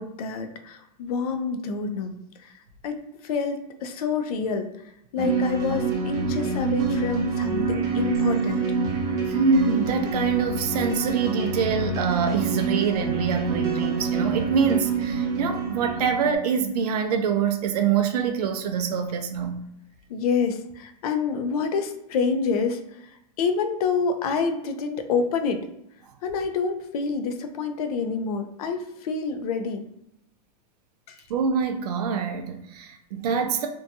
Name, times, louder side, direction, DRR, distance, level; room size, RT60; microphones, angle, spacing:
voice 1, 0.0-2.6 2.8-8.7 20.1-25.7 26.2-29.9 31.1-31.2, left 5 dB, 65° left, 7 dB, 0.5 m, -28 dB
sound 1, 5.2-16.3, right 4 dB, 20° right, 0.5 m, -26 dB
voice 2, 9.3-19.6 31.3-33.7, right 6 dB, 75° right, 5 dB, 0.4 m, -25 dB
2.7 x 2.2 x 2.6 m, 0.80 s
supercardioid pair, 160°, 20 cm